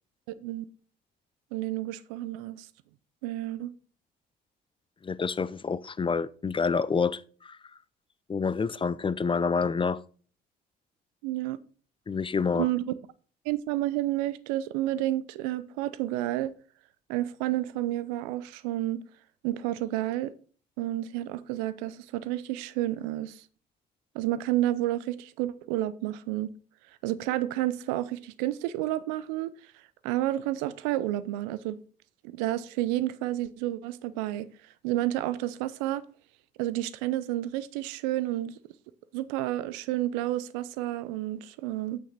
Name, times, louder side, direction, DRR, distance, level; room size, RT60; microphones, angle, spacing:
voice 1, 0.3-0.7 1.5-2.7 3.2-3.7 11.2-11.6 12.5-12.9 13.5-16.5 17.1-19.0 19.4-20.3 20.8-23.4 24.1-26.5 27.0-29.5 30.0-31.8 32.2-34.5 34.8-36.0 36.6-38.6 39.1-42.0, right 14 dB, 85° right, 0.5 m, -30 dB
voice 2, 5.0-7.6 8.3-10.0 12.1-12.7, left 5 dB, 25° left, 0.5 m, -28 dB
8.5 x 6.1 x 4.1 m
hypercardioid pair, 55°, 21 cm